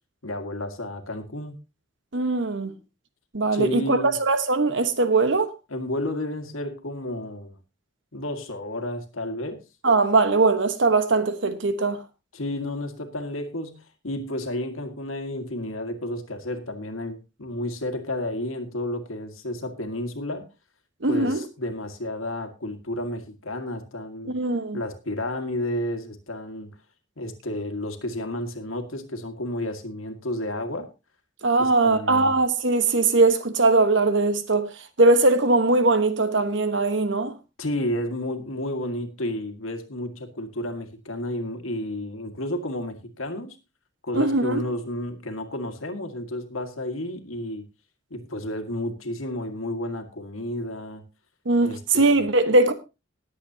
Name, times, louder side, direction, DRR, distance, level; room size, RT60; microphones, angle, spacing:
voice 1, 0.2-1.6 3.5-4.2 5.7-7.6 8.1-9.6 12.3-20.5 21.1-24.4 24.7-26.8 27.2-30.9 31.6-32.3 37.6-43.6 44.0-47.7 48.1-51.0 51.6-52.2, left 1 dB, 85° left, 1.9 m, -31 dB
voice 2, 2.1-2.7 3.3-5.5 9.8-12.0 21.0-21.4 24.3-24.8 31.4-34.7 35.0-37.4 44.1-44.6 51.4-52.7, right 3 dB, 65° right, 1.2 m, -20 dB
20.5 x 8.2 x 2.8 m
head